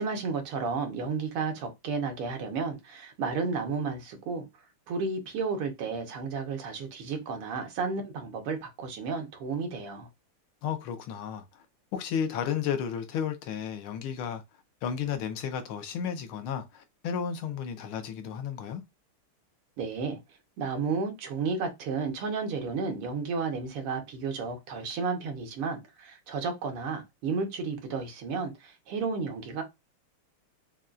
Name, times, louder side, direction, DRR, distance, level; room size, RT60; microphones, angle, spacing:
voice 1, 0.0-4.5 4.9-10.1 19.8-20.2 20.6-29.6, right 4 dB, 85° right, 1.9 m, -32 dB
voice 2, 10.6-11.6 11.9-14.4 14.8-18.8, left 8 dB, 80° left, 1.5 m, -33 dB
5.4 x 2.3 x 2.4 m
omnidirectional pair, 2.4 m